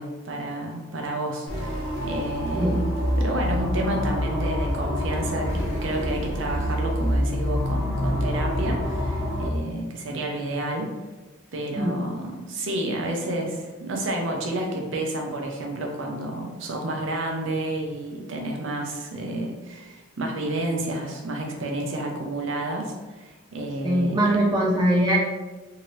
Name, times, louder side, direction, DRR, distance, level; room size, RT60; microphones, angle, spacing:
voice 1, 0.0-2.8 3.2-10.9 11.5-24.1, right 1 dB, 65° right, 1 dB, 0.6 m, -30 dB
sound 1, 1.5-9.5, equal, 75° left, 1.0 m, -26 dB
voice 2, 23.8-25.2, right 1 dB, 20° right, -4 dB, 0.4 m, -21 dB
2.8 x 2.8 x 3.0 m, 1.2 s
head